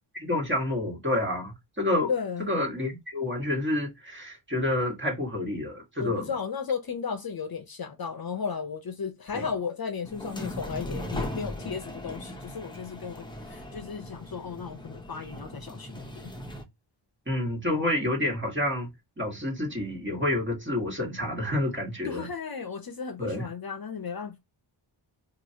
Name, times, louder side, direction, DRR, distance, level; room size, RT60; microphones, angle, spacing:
voice 1, 0.2-2.1 2.4-6.3 9.3-9.5 17.3-22.3 23.2-23.5, left 1 dB, 25° right, 1.5 m, -29 dB
voice 2, 2.1-2.5 6.0-16.3 22.1-24.4, left 6 dB, 50° left, 0.7 m, -34 dB
sound 1, 10.0-16.6, left 1 dB, 10° left, 0.7 m, -38 dB
3.0 x 2.5 x 2.7 m
cardioid pair, 60°, 48 cm